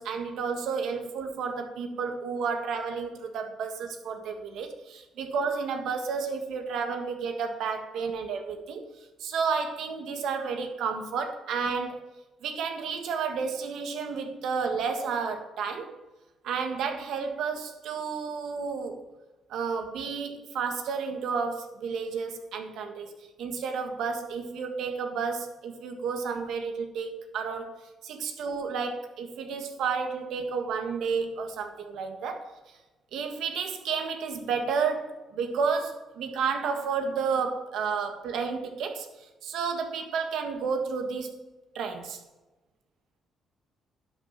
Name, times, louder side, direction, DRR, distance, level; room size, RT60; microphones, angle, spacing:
voice 1, 0.0-8.9 9.2-12.0 12.4-15.9 16.4-19.0 19.5-23.1 23.4-32.5 33.1-39.1 39.4-41.3 41.7-42.2, right 5 dB, 80° right, 5 dB, 1.6 m, -31 dB
11.5 x 6.3 x 5.7 m, 1.1 s
cardioid pair, 90°, 0 cm